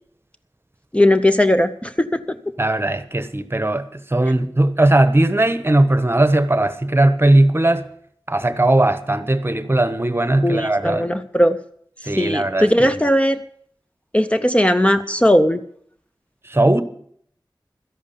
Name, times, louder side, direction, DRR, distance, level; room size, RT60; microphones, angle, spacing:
voice 1, 0.9-2.2 10.4-11.6 12.0-13.4 14.1-15.6, left 1 dB, 15° left, 0.6 m, -17 dB
voice 2, 2.6-3.8 4.1-7.9 8.3-11.1 12.1-12.7 16.5-16.8, right 1 dB, 30° right, 1.0 m, -18 dB
13.0 x 11.0 x 7.1 m
wide cardioid pair, 60°, 8 cm